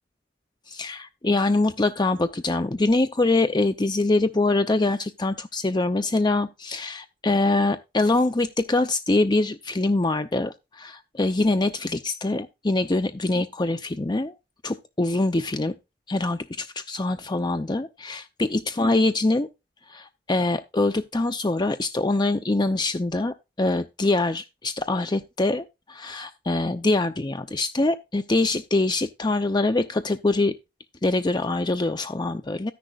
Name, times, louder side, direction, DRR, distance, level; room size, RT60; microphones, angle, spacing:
voice 1, 0.7-14.4 14.6-15.7 16.1-19.5 19.9-30.5 31.0-32.7, left 2 dB, 25° left, 0.6 m, -24 dB
13.5 x 10.5 x 2.4 m
head